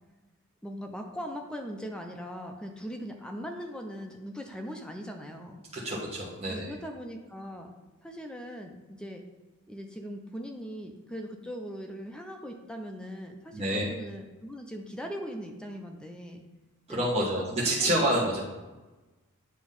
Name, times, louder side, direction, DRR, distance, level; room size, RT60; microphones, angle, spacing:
voice 1, 0.6-5.6 6.5-7.7 8.0-9.2 9.7-16.4 16.9-17.3 17.8-18.2, equal, 5° left, 3 dB, 0.5 m, -40 dB
voice 2, 5.7-6.7 13.5-13.9 16.9-18.4, right 1 dB, 30° right, -6 dB, 1.2 m, -28 dB
8.4 x 3.0 x 5.4 m, 1.2 s
head